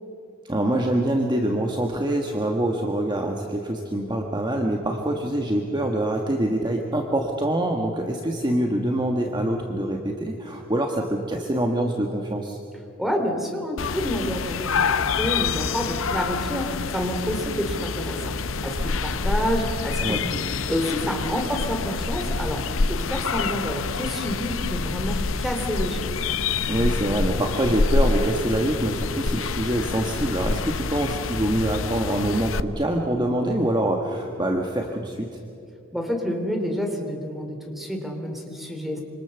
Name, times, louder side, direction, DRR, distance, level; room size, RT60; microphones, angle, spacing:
voice 1, 0.4-12.6 20.0-20.2 26.7-35.4, right 1 dB, 20° right, 2 dB, 1.4 m, -25 dB
voice 2, 13.0-18.3 18.6-20.4 20.7-22.6 22.9-26.2 35.9-39.0, equal, ahead, 2 dB, 3.1 m, -28 dB
sound 1, 13.8-32.6, left 4 dB, 70° left, 0.8 m, -27 dB
26.0 x 25.5 x 7.0 m, 2.6 s
head